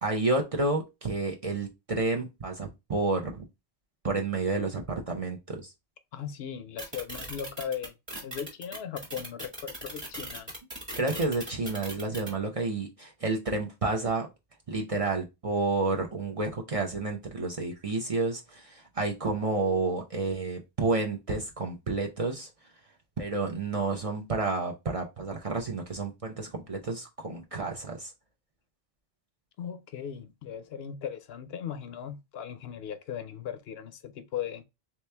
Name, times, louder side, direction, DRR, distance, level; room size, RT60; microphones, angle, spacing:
voice 1, 0.0-3.5 4.0-5.7 10.9-14.3 14.7-22.5 23.2-28.1, right 3 dB, 40° right, 0.6 m, -30 dB
voice 2, 6.1-7.9 8.2-10.5 29.6-34.6, left 8 dB, 75° left, 0.8 m, -38 dB
sound 1, 6.8-12.3, right 1 dB, 25° right, 1.5 m, -39 dB
3.3 x 3.0 x 3.2 m
omnidirectional pair, 1.1 m